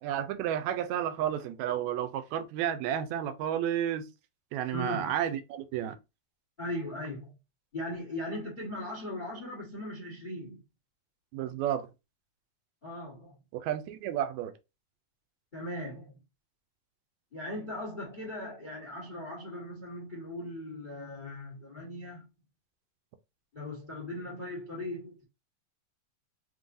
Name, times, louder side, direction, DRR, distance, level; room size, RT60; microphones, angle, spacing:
voice 1, 0.0-4.0 4.5-6.0 11.3-11.9 13.5-14.5, right 10 dB, 80° right, 1.7 m, -31 dB
voice 2, 4.7-5.1 6.6-7.3 7.7-10.6 12.8-13.4 15.5-16.1 17.3-22.2 23.5-25.2, left 1 dB, 60° left, 0.5 m, -38 dB
5.5 x 2.8 x 2.6 m
omnidirectional pair, 3.7 m